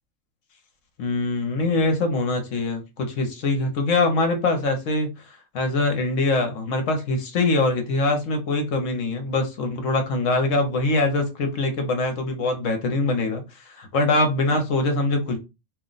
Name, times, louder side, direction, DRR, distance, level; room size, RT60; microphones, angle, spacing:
voice 1, 1.0-15.4, left 2 dB, 75° left, 1.1 m, -23 dB
2.7 x 2.1 x 3.8 m
omnidirectional pair, 1.3 m